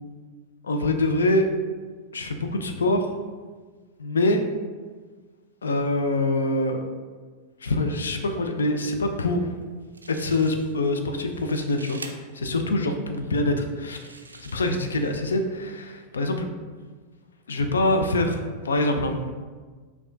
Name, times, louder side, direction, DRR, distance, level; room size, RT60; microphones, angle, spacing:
voice 1, 0.6-1.5 2.1-3.2 4.0-4.4 5.6-6.9 7.6-9.5 10.1-16.5 17.5-19.3, left 2 dB, 70° left, 6 dB, 0.4 m, -25 dB
sound 1, 9.6-9.7 9.9-10.9 11.2-12.1 12.9-13.0 13.6-15.1, right 3 dB, 80° right, 0.3 m, -45 dB
6.1 x 2.3 x 2.5 m, 1.4 s
figure-of-eight pair, 90°, 0 cm